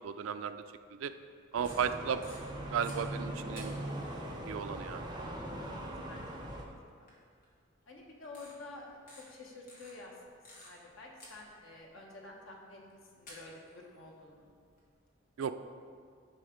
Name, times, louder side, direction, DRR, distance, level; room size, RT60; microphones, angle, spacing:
voice 1, 0.0-0.6 1.0-1.1 1.5-2.2 2.7-3.7 4.5-5.0 15.4-15.5, right 7 dB, 85° right, 10 dB, 0.4 m, -34 dB
sound 1, 1.4-3.0 3.5-4.1 5.9-6.0 7.1-7.2 7.4-7.5 8.2-8.5 9.1-9.2 9.7-10.9 11.2-11.9 12.9-13.0 13.3-14.9, left 1 dB, 45° left, 1.7 m, -53 dB
sound 2, 1.6-6.6, right 1 dB, 20° right, 0.8 m, -40 dB
voice 2, 5.7-6.7 7.0-7.1 7.9-9.0 9.3-12.8 13.2-14.5, left 2 dB, 80° left, -1 dB, 1.2 m, -50 dB
9.8 x 3.6 x 5.1 m, 2.1 s
head